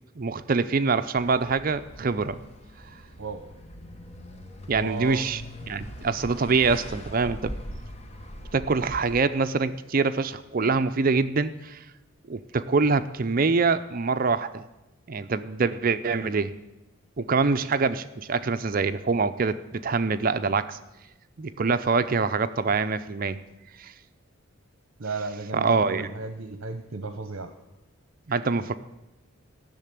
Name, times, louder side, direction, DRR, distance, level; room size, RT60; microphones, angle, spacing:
voice 1, 0.2-2.4 4.7-5.4 5.7-7.5 8.5-11.8 12.3-14.7 15.1-16.5 17.2-20.8 21.4-23.4 23.8-23.9 25.5-26.1 28.3-28.7, right 4 dB, 40° right, 12 dB, 0.5 m, -25 dB
sound 1, 1.1-9.2, equal, 30° left, 1.0 m, -41 dB
voice 2, 4.7-5.2 25.0-27.5, right 3 dB, 65° right, 9 dB, 0.8 m, -34 dB
14.5 x 6.6 x 10.0 m, 0.99 s
head